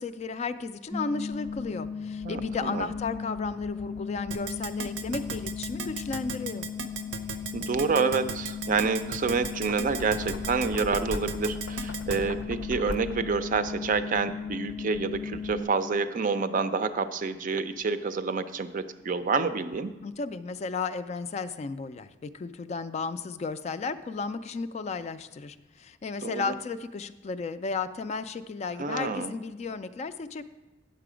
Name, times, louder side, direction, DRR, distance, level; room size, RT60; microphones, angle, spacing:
voice 1, 0.0-6.7 20.0-30.4, left 4 dB, 35° left, 11 dB, 0.3 m, -34 dB
sound 1, 0.9-15.6, left 6 dB, ahead, 0.6 m, -36 dB
voice 2, 2.2-2.9 7.5-19.9 26.2-26.5 28.8-29.3, right 4 dB, 45° right, 11 dB, 0.4 m, -28 dB
Keyboard (musical), 4.3-12.2, right 6 dB, 85° right, 0.6 m, -35 dB
Knock, 9.3-13.4, left 2 dB, 85° left, 0.6 m, -40 dB
9.0 x 6.8 x 4.9 m, 1.1 s
head